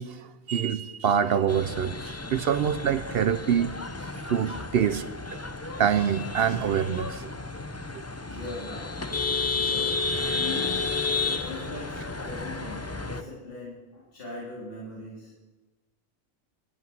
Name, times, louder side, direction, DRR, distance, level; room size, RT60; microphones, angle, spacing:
voice 1, 0.0-3.7 4.2-5.0 5.8-7.3, right 8 dB, 65° right, 12 dB, 0.6 m, -25 dB
sound 1, 1.5-13.2, left 4 dB, 20° left, 0.4 m, -32 dB
voice 2, 8.2-9.0 9.5-10.8 11.2-15.3, left 2 dB, 45° left, -7 dB, 3.3 m, -40 dB
11.0 x 8.3 x 7.7 m, 1.2 s
omnidirectional pair, 1.4 m